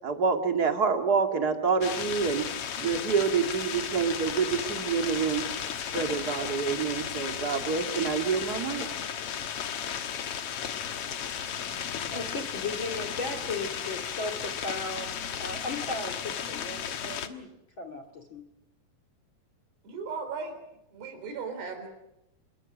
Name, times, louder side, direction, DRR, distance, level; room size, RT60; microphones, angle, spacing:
voice 1, 0.0-2.5 2.8-5.4 5.9-8.9, right 5 dB, 30° right, 5 dB, 2.0 m, -27 dB
sound 1, 1.8-17.3, left 8 dB, 65° left, 1.5 m, -34 dB
voice 2, 12.1-17.5 17.8-18.4, left 2 dB, 35° left, 6 dB, 2.4 m, -36 dB
voice 3, 19.8-20.6 20.9-21.9, right 5 dB, 80° right, 6 dB, 5.9 m, -36 dB
27.5 x 22.5 x 6.4 m, 0.86 s
omnidirectional pair, 4.7 m